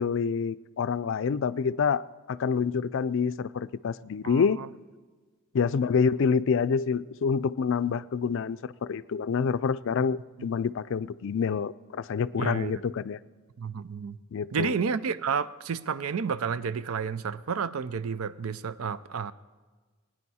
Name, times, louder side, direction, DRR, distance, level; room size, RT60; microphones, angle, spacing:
voice 1, 0.0-4.6 5.5-13.2 14.3-14.7, left 6 dB, 65° left, 16 dB, 0.4 m, -27 dB
voice 2, 4.2-4.7 12.4-12.7 13.6-14.2 14.5-19.3, right 6 dB, 90° right, 16 dB, 0.5 m, -31 dB
21.0 x 9.9 x 4.2 m, 1.4 s
head